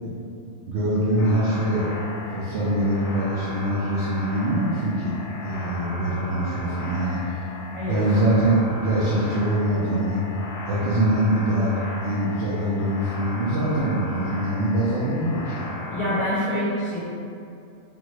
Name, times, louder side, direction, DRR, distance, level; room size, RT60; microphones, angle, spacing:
voice 1, 0.0-1.9 2.3-5.2 5.4-7.4 7.9-10.2 10.6-15.7, right 1 dB, 65° right, -9 dB, 0.7 m, -23 dB
sound 1, 1.2-16.2, left 2 dB, 75° left, 1.0 m, -37 dB
voice 2, 7.7-8.1 15.9-17.0, equal, 45° left, -12 dB, 0.5 m, -26 dB
3.5 x 2.1 x 3.1 m, 2.6 s
omnidirectional pair, 1.4 m